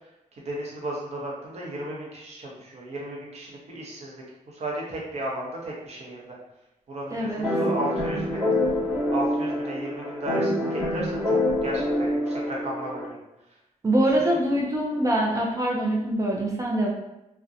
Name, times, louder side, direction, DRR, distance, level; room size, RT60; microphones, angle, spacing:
voice 1, 0.4-6.4 6.9-8.3 9.1-13.2, right 1 dB, 50° right, -3 dB, 0.7 m, -34 dB
voice 2, 7.1-7.5 13.8-16.9, right 1 dB, 25° right, -3 dB, 0.3 m, -24 dB
sound 1, 7.4-13.1, left 1 dB, 5° left, 0.9 m, -26 dB
2.6 x 2.1 x 2.4 m, 0.90 s
wide cardioid pair, 175°, 14 cm